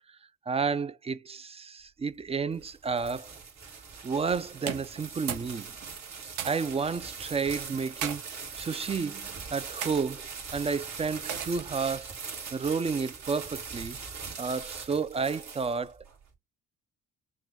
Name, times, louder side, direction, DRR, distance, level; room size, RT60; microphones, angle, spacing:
voice 1, 0.5-3.4 4.0-5.7 6.4-12.1 12.5-14.0 14.4-16.0, right 5 dB, 20° right, 0.3 m, -31 dB
sound 1, 2.3-16.1, right 5 dB, 65° right, 2.1 m, -41 dB
sound 2, 4.6-5.5 5.8-6.8 7.7-8.2 8.9-9.2 9.8-10.1 11.3-11.8, right 8 dB, 85° right, 0.8 m, -36 dB
6.1 x 2.2 x 3.6 m
cardioid pair, 90°, 30 cm